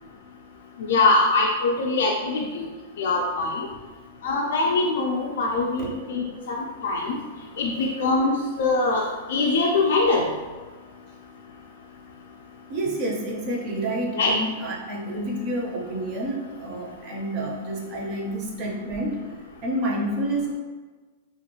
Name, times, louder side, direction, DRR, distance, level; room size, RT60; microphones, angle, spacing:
voice 1, 0.9-2.7 3.0-3.7 4.2-7.2 7.6-9.0 9.3-10.2 14.2-14.3, left 3 dB, 65° left, -1 dB, 0.3 m, -23 dB
voice 2, 12.7-19.2 19.6-20.5, right 1 dB, 30° right, -2 dB, 0.5 m, -29 dB
2.9 x 2.3 x 2.9 m, 1.4 s
supercardioid pair, 175°, 0 cm